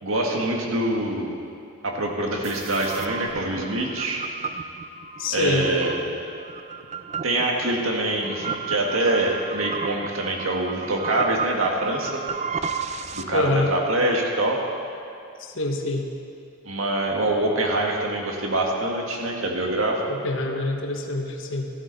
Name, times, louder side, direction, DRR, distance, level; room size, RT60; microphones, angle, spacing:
voice 1, 0.0-1.3 1.8-4.2 5.3-6.0 7.2-12.2 13.1-14.6 16.6-20.0, right 1 dB, 90° right, 0 dB, 1.8 m, -25 dB
sound 1, 2.4-13.2, right 5 dB, 35° right, 0.4 m, -33 dB
voice 2, 5.2-5.7 13.3-13.7 15.4-16.1 20.1-21.7, left 2 dB, 70° left, 3 dB, 1.2 m, -25 dB
14.5 x 12.5 x 4.1 m, 2.5 s
head